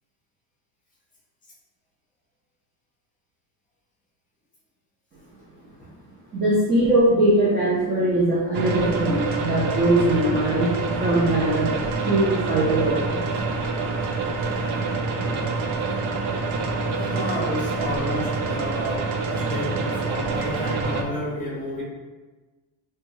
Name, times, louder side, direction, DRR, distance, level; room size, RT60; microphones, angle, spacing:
voice 1, 6.3-10.7 11.0-11.7 12.0-13.2, right 1 dB, 25° right, -8 dB, 0.3 m, -21 dB
sound 1, 8.5-21.0, right 3 dB, 90° right, 0.5 m, -26 dB
voice 2, 16.9-21.8, left 1 dB, 20° left, -5 dB, 0.7 m, -31 dB
3.4 x 2.2 x 3.0 m, 1.2 s
cardioid pair, 175°, 45 cm